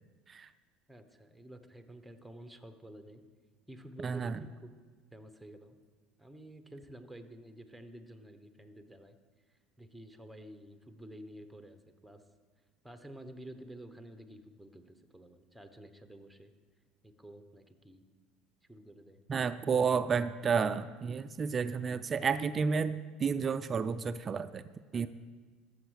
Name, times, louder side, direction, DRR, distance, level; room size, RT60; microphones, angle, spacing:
voice 1, 0.9-3.2 3.7-4.7 5.1-5.8 6.2-9.2 9.8-12.2 12.8-16.5 17.0-18.0 18.7-19.2 24.9-25.1, right 1 dB, ahead, 7 dB, 1.0 m, -50 dB
voice 2, 4.0-4.5 19.3-24.6 24.9-25.1, right 6 dB, 30° right, 12 dB, 0.4 m, -31 dB
13.5 x 6.5 x 6.4 m, 1.5 s
supercardioid pair, 105°, 0 cm